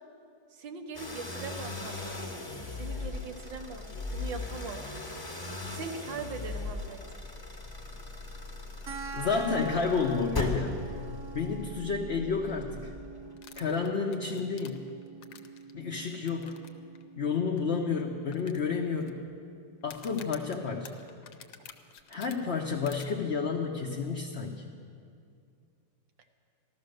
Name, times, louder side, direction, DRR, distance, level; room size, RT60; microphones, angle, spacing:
voice 1, 0.5-2.4 2.7-4.9 5.7-7.0, right 5 dB, 90° right, 6 dB, 1.8 m, -41 dB
sound 1, 0.9-13.3, left 2 dB, 15° left, 1.1 m, -39 dB
sound 2, 8.9-19.8, right 4 dB, 55° right, 1.0 m, -46 dB
voice 2, 9.1-10.8 11.3-12.9 13.6-14.8 15.7-16.6 17.2-19.2 19.8-21.0 22.1-24.6, left 5 dB, 45° left, 0 dB, 0.9 m, -30 dB
sound 3, 13.4-15.7 16.3-16.7 17.0-17.1 17.6-17.7 18.3-19.1 19.8-22.3 22.9-23.1, left 8 dB, 65° left, 1.3 m, -49 dB
14.5 x 13.0 x 6.5 m, 2.3 s
omnidirectional pair, 2.0 m